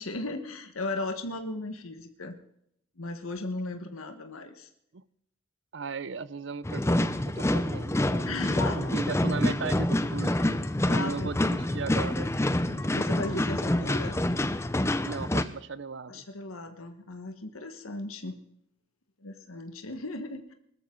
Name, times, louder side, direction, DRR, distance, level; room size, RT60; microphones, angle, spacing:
voice 1, 0.0-2.4 3.0-4.7 8.2-9.0 10.9-11.3 12.7-14.2 16.1-18.4 19.2-20.5, left 2 dB, 90° left, 7 dB, 1.4 m, -36 dB
voice 2, 5.7-7.0 7.3-8.3 8.7-10.5 10.9-12.3 15.0-16.2, right 5 dB, 60° right, 18 dB, 0.6 m, -37 dB
sound 1, 6.6-15.4, left 1 dB, 15° left, 0.6 m, -27 dB
20.5 x 13.5 x 3.8 m, 0.75 s
head